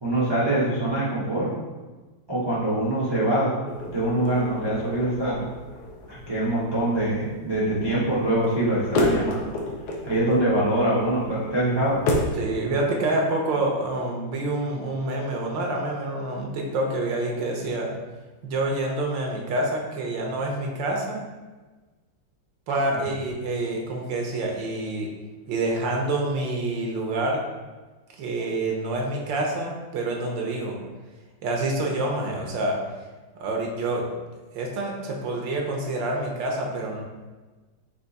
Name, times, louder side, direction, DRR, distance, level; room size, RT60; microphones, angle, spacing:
voice 1, 0.0-1.5 2.3-3.6 3.9-5.4 6.1-9.5 10.0-12.0, right 1 dB, 45° right, -8 dB, 0.3 m, -24 dB
sound 1, 3.7-12.4, left 1 dB, 70° left, 1.2 m, -31 dB
voice 2, 12.4-17.9 18.4-21.2 22.7-25.1 25.5-27.4 28.2-30.8 31.4-32.8 33.3-34.1 34.5-37.0, right 2 dB, 75° right, 0 dB, 1.4 m, -27 dB
4.5 x 2.8 x 4.0 m, 1.3 s
omnidirectional pair, 2.1 m